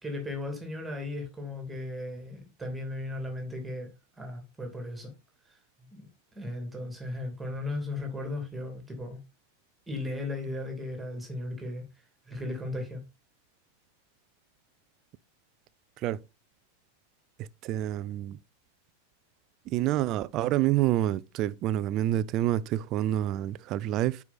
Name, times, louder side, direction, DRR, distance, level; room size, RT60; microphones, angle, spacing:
voice 1, 0.0-3.9 4.2-5.1 5.5-5.6 5.9-6.1 6.3-9.2 9.9-11.9 12.3-13.0, left 2 dB, 10° right, 2.8 m, -36 dB
voice 2, 17.4-18.4 19.7-24.2, right 13 dB, 35° right, 0.5 m, -28 dB
9.2 x 4.8 x 4.2 m
figure-of-eight pair, 90°, 0 cm